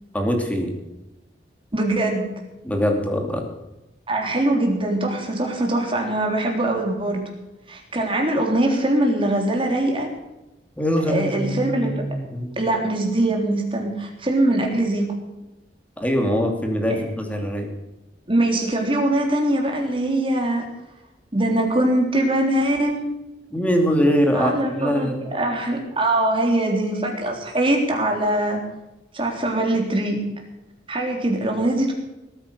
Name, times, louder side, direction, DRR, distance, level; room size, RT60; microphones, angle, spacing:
voice 1, 0.1-0.7 2.6-3.4 10.8-12.5 16.0-17.7 23.5-25.2, equal, 10° left, 3 dB, 2.7 m, -22 dB
voice 2, 1.7-2.3 4.1-7.3 7.7-10.1 11.1-12.0 12.6-15.1 16.9-17.0 18.3-20.7 21.3-23.1 24.3-28.6 29.1-30.2 30.9-31.9, right 1 dB, 30° right, 1 dB, 3.6 m, -22 dB
19.0 x 9.1 x 6.7 m, 0.98 s
head